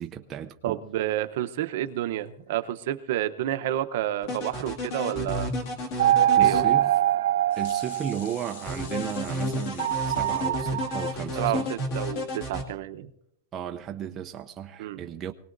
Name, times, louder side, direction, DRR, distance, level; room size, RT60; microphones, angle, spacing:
voice 1, 0.0-0.8 6.4-7.0 7.6-11.7 13.5-15.3, right 9 dB, 20° right, 0.5 m, -35 dB
voice 2, 0.6-5.5 6.4-6.7 11.4-13.1 14.8-15.0, right 12 dB, 50° right, 0.8 m, -30 dB
sound 1, 1.8-2.9 4.7-4.8 6.2-6.3 6.5-6.7 7.3-10.4, left 7 dB, 70° left, 1.5 m, -47 dB
sound 2, 4.2-6.6 8.6-12.6, left 1 dB, 35° left, 2.1 m, -31 dB
sound 3, 6.0-8.6 9.8-11.1, right 12 dB, 90° right, 0.5 m, -23 dB
24.0 x 18.5 x 2.6 m
supercardioid pair, 175°, 0 cm